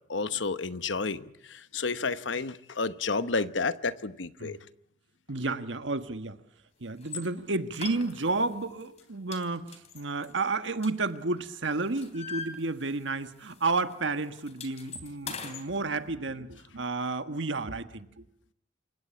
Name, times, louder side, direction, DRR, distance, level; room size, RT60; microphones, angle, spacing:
voice 1, 0.1-4.6, left 4 dB, 80° left, 13 dB, 1.0 m, -31 dB
voice 2, 5.3-6.4 6.8-18.2, right 3 dB, 75° right, 10 dB, 1.5 m, -31 dB
sound 1, 7.0-7.3 7.7-8.5 8.8-9.0 9.3-11.4 11.7-13.2 13.4-13.6 13.9-15.7, left 5 dB, 35° left, 3.4 m, -41 dB
28.0 x 16.0 x 8.5 m, 0.75 s
head